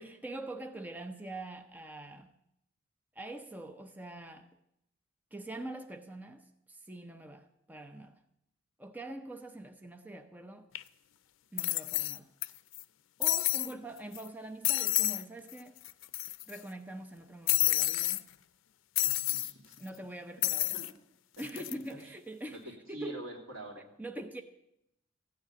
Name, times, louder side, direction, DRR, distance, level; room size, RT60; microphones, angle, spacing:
voice 1, 0.0-2.3 3.2-4.5 5.3-8.2 8.8-10.7 11.5-12.3 13.2-15.8 16.5-18.2 19.8-20.8 21.4-22.6 22.9-23.2 24.0-24.4, right 1 dB, 10° right, 0.6 m, -44 dB
sound 1, 10.8-10.9 11.6-12.5 12.7-12.8 13.2-13.7 14.2-14.3 14.6-15.2 15.5-15.6 15.8-16.6 17.5-18.2 19.0-19.5 20.4-20.9 21.4-21.7, left 16 dB, 75° left, 0.5 m, -29 dB
voice 2, 19.0-19.8 20.7-20.9 21.4-22.0 22.5-23.9, right 1 dB, 80° right, 3.3 m, -46 dB
15.0 x 9.2 x 8.6 m
head